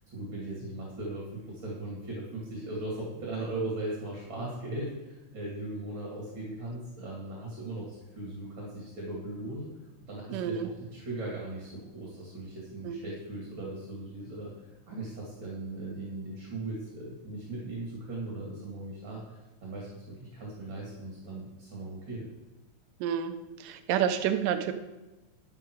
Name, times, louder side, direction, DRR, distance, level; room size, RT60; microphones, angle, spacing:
voice 1, 0.1-9.7 10.1-14.5 14.9-22.3, right 2 dB, 40° right, -4 dB, 2.8 m, -38 dB
voice 2, 10.3-10.7 12.9-13.0 23.0-23.3 23.6-24.7, right 9 dB, 85° right, 9 dB, 2.4 m, -29 dB
11.0 x 10.0 x 4.6 m, 1.1 s
omnidirectional pair, 3.7 m